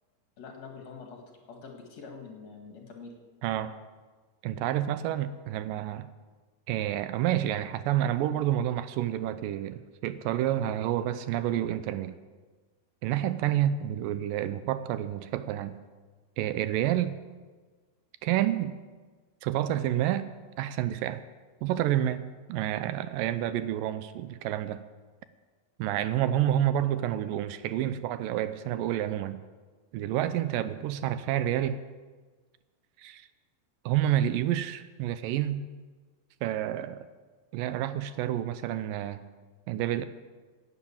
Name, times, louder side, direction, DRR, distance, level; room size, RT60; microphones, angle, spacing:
voice 1, 0.4-3.1, left 5 dB, 55° left, 2 dB, 2.6 m, -45 dB
voice 2, 3.4-3.7 4.4-6.1 6.7-12.2 13.0-15.8 16.4-17.2 18.2-18.8 19.4-20.3 20.6-21.2 21.6-24.8 25.8-29.4 29.9-31.8 33.0-33.3 33.9-35.6 36.4-37.1 37.5-39.2 39.7-40.0, right 12 dB, 80° right, 13 dB, 2.2 m, -29 dB
11.5 x 8.9 x 8.6 m, 1.4 s
omnidirectional pair, 4.0 m